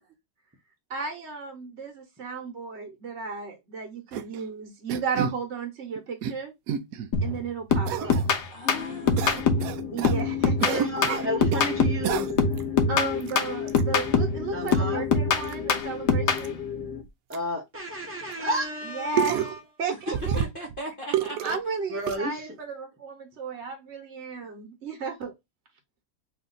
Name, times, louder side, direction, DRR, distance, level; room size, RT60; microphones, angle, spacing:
voice 1, 0.9-6.5 7.2-8.2 9.9-10.8 12.9-16.6 18.8-19.5 19.8-20.4 21.4-25.3, right 5 dB, 50° right, 1.1 m, -34 dB
sound 1, 4.1-4.4 4.9-5.4 6.0-6.4 6.7-7.1 7.9-8.2 9.2-10.2 10.6-11.7 12.0-12.6 13.2-13.3 13.7-13.8 14.7-14.8 15.4-15.5 15.8-15.9 16.4-16.5 17.1-17.2 17.3-17.4 18.3-18.4 19.1-19.6 20.1-20.8 21.1-21.6 22.0-22.2, right 9 dB, 70° right, 0.9 m, -29 dB
sound 2, 7.1-7.4 7.7-9.7 10.0-12.1 12.4-14.4 14.7-16.5, left 4 dB, 80° left, 1.4 m, -24 dB
voice 2, 8.5-9.8 19.9-21.6, right 1 dB, 35° left, 1.0 m, -38 dB
sound 3, 8.6-17.0, left 8 dB, 60° left, 1.7 m, -34 dB
voice 3, 10.4-12.3 14.5-15.0 17.3-19.6 21.9-22.6, right 1 dB, 20° right, 0.3 m, -32 dB
3.5 x 2.8 x 3.8 m
omnidirectional pair, 1.8 m